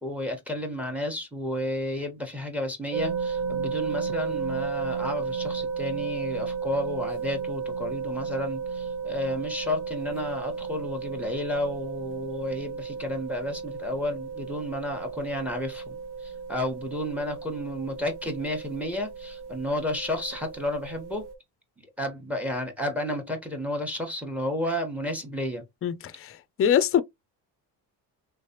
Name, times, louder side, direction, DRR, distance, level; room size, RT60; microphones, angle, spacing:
voice 1, 0.0-21.2 22.0-25.6, left 1 dB, 5° right, 1.2 m, -32 dB
sound 1, 2.9-21.3, right 5 dB, 70° right, 1.0 m, -34 dB
voice 2, 25.8-26.3 26.6-27.0, left 9 dB, 35° left, 0.4 m, -23 dB
3.2 x 3.2 x 2.8 m
cardioid pair, 105°, 40 cm